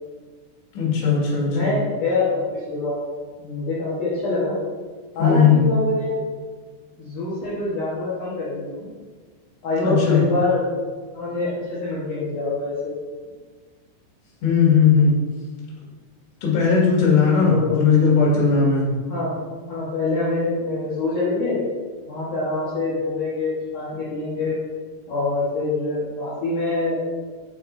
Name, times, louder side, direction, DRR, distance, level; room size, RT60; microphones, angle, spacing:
voice 1, 0.7-1.7 5.2-5.7 9.8-10.2 14.4-15.1 16.4-18.9, left 5 dB, 65° left, -5 dB, 4.0 m, -17 dB
voice 2, 1.5-3.0 3.4-4.6 5.2-6.2 7.0-8.9 9.6-10.7 11.1-12.9 17.5-17.8 19.1-19.4 19.7-21.6 22.1-24.6 25.1-27.0, left 2 dB, 85° left, -8 dB, 1.7 m, -25 dB
8.4 x 6.3 x 2.6 m, 1.5 s
omnidirectional pair, 6.0 m